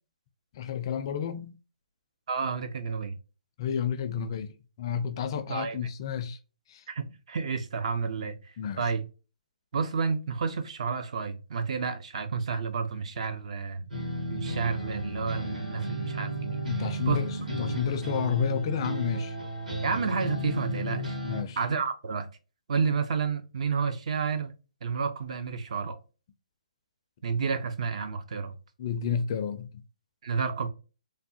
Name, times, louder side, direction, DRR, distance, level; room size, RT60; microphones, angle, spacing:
voice 1, 0.5-1.5 3.6-4.5 4.8-6.4 6.7-6.8 8.6-8.9 16.7-19.4 21.2-21.6 28.8-29.7, left 7 dB, 35° left, 0.4 m, -30 dB
voice 2, 2.3-3.1 5.5-5.8 6.9-9.0 9.7-13.9 14.3-17.2 19.8-21.2 21.6-22.3 22.7-24.5 24.8-26.0 27.2-28.6 30.2-30.7, right 5 dB, 55° right, 0.5 m, -30 dB
sound 1, 13.9-21.4, right 1 dB, 85° right, 1.6 m, -34 dB
3.4 x 2.0 x 2.6 m
hypercardioid pair, 155°, 4 cm